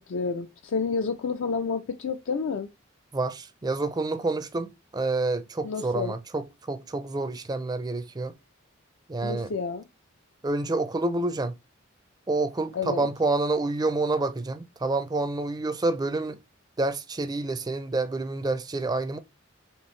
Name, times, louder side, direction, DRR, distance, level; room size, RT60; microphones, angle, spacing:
voice 1, 0.1-2.7 5.6-6.1 9.2-9.8 12.7-13.1, left 5 dB, 65° left, 0.4 m, -29 dB
voice 2, 3.1-8.3 9.1-9.5 10.4-11.5 12.3-16.4 16.8-19.2, right 2 dB, 20° right, 0.4 m, -28 dB
4.4 x 3.2 x 3.1 m
head